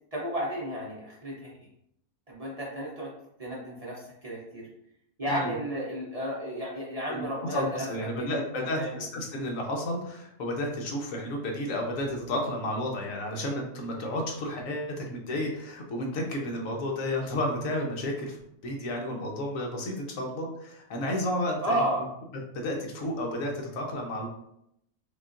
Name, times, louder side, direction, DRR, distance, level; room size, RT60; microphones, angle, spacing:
voice 1, 0.1-1.7 2.3-3.1 3.4-4.7 5.2-9.0 21.6-22.0, equal, 40° right, -5 dB, 0.6 m, -33 dB
voice 2, 7.5-21.8 22.5-24.3, left 1 dB, 65° left, 1 dB, 1.1 m, -32 dB
5.3 x 2.3 x 2.5 m, 0.76 s
omnidirectional pair, 1.6 m